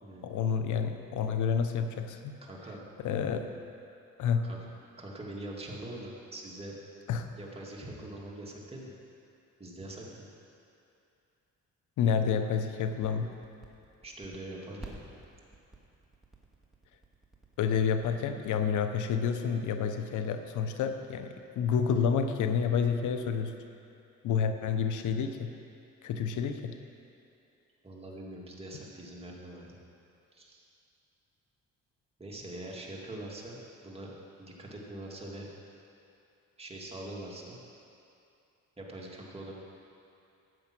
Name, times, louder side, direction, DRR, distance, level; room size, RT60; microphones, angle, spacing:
voice 1, 0.2-2.3 3.0-3.5 4.2-4.4 7.1-7.3 12.0-13.3 17.6-23.5 24.2-25.5 26.0-26.7, left 6 dB, 80° left, 7 dB, 0.9 m, -29 dB
voice 2, 2.4-2.8 4.4-4.6 5.0-6.8 7.4-8.9 9.6-10.2 14.0-15.0 27.8-29.7 30.3-30.7 32.2-34.1 34.4-35.5 36.6-37.6 38.8-39.5, right 1 dB, 20° right, -3 dB, 2.3 m, -43 dB
sound 1, 12.9-18.2, right 2 dB, ahead, 1.8 m, -49 dB
12.5 x 8.0 x 6.1 m, 2.7 s
cardioid pair, 90°, 30 cm